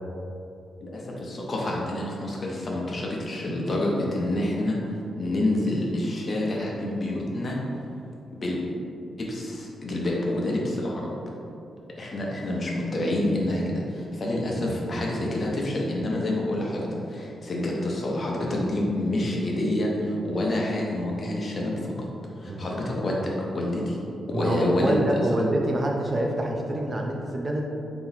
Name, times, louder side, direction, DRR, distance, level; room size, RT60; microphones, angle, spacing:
voice 1, 0.8-4.8 5.2-7.6 8.3-8.6 9.2-11.2 12.0-22.1 22.4-24.0 24.3-25.0 25.3-25.5, left 1 dB, 35° left, -2 dB, 0.7 m, -27 dB
voice 2, 14.7-15.1 22.5-22.7 24.3-27.6, right 1 dB, 25° right, 0 dB, 0.4 m, -27 dB
4.3 x 3.0 x 4.0 m, 2.6 s
wide cardioid pair, 155°, 0 cm